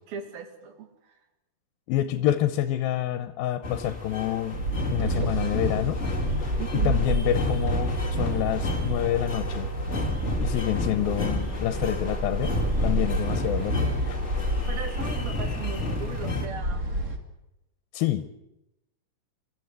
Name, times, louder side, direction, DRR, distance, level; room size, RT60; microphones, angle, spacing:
voice 1, 0.1-1.2 6.6-7.1 14.7-17.0, right 7 dB, 80° right, 7 dB, 4.0 m, -38 dB
voice 2, 1.9-4.6 4.9-6.0 6.8-9.7 10.4-12.5 12.8-14.2 17.9-18.3, left 12 dB, 85° left, 11 dB, 2.7 m, -27 dB
sound 1, 3.6-16.5, left 2 dB, 20° left, 2.2 m, -32 dB
sound 2, 4.5-17.2, right 1 dB, 30° right, 1.4 m, -29 dB
28.5 x 13.5 x 8.2 m, 0.91 s
omnidirectional pair, 4.2 m